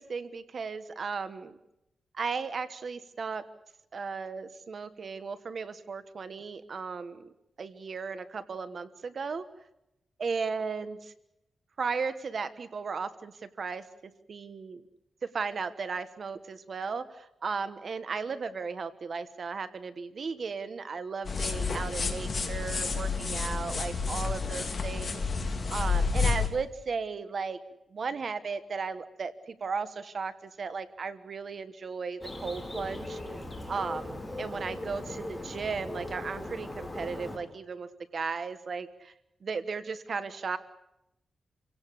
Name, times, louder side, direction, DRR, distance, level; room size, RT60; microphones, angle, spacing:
voice 1, 0.0-1.6 2.1-3.4 3.9-7.3 7.6-9.4 10.2-11.0 11.8-13.3 13.6-13.8 14.3-14.8 15.2-27.6 27.9-33.2 33.7-39.1 39.4-40.6, right 5 dB, 50° right, 12 dB, 1.2 m, -35 dB
sound 1, 21.2-26.5, left 4 dB, 40° left, 3.1 m, -30 dB
Bird, 32.2-37.4, left 1 dB, 10° left, 4.5 m, -39 dB
28.5 x 17.0 x 8.4 m, 0.88 s
wide cardioid pair, 155°, 0 cm